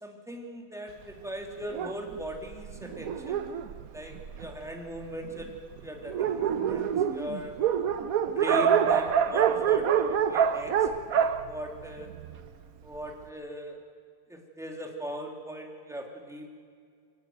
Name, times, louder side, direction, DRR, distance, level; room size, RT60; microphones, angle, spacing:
voice 1, 0.0-3.5 3.9-5.5 5.8-7.5 8.3-10.7 11.1-12.1 12.8-13.8 14.3-16.5, equal, ahead, 1 dB, 2.5 m, -39 dB
Dog, 1.7-4.7 5.4-5.5 5.8-5.9 6.1-12.5, right 8 dB, 65° right, 0.8 m, -26 dB
23.0 x 16.5 x 9.3 m, 2.1 s
omnidirectional pair, 2.4 m